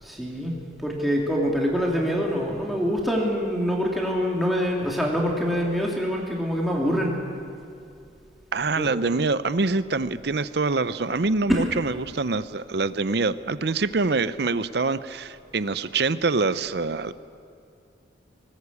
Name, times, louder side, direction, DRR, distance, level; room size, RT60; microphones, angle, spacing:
voice 1, 0.0-0.5 0.8-7.1 8.8-9.0 11.5-11.6, equal, ahead, -2 dB, 2.9 m, -25 dB
voice 2, 8.5-17.1, right 3 dB, 60° right, 14 dB, 0.6 m, -25 dB
20.0 x 19.0 x 8.4 m, 2.4 s
head